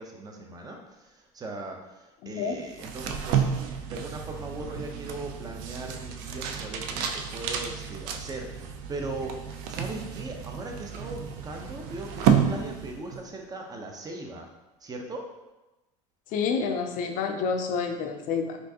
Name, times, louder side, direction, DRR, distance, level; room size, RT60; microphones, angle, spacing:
voice 1, 0.0-3.4 3.8-14.5 14.8-15.2, right 2 dB, 25° right, 2 dB, 0.7 m, -39 dB
voice 2, 2.2-2.6 16.3-18.6, left 5 dB, 55° left, 5 dB, 0.5 m, -28 dB
sound 1, 2.7-13.3, right 7 dB, 65° right, 0.4 m, -30 dB
4.3 x 2.6 x 2.8 m, 1.0 s
supercardioid pair, 100°, 16 cm